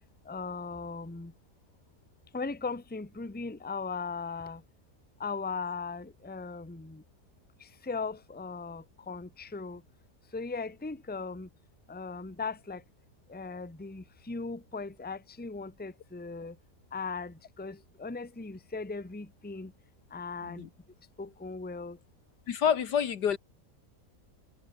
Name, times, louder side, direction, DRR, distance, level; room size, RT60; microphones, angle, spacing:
voice 1, 0.3-1.3 2.3-4.6 5.2-7.0 7.6-9.8 10.3-11.5 11.9-12.8 13.3-16.5 16.9-19.7 20.1-20.7 21.2-22.0, left 4 dB, 5° left, 1.1 m, -38 dB
voice 2, 22.5-23.4, left 8 dB, 85° left, 2.0 m, -28 dB
omnidirectional pair, 1.8 m